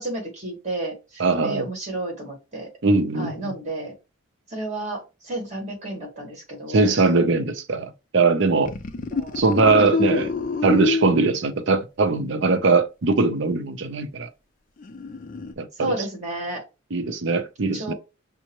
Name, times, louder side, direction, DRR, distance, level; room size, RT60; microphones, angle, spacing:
voice 1, 0.0-2.7 3.1-3.9 4.5-6.9 9.1-9.4 15.8-16.6 17.7-17.9, right 2 dB, 35° right, 1.8 m, -31 dB
voice 2, 1.2-1.7 2.8-3.5 6.7-8.7 9.4-10.3 10.6-14.3 15.6-15.9 16.9-17.9, right 3 dB, 65° right, 0.6 m, -21 dB
sound 1, 8.7-11.4 14.8-15.5, left 3 dB, 40° left, 0.4 m, -26 dB
5.3 x 2.0 x 2.9 m
head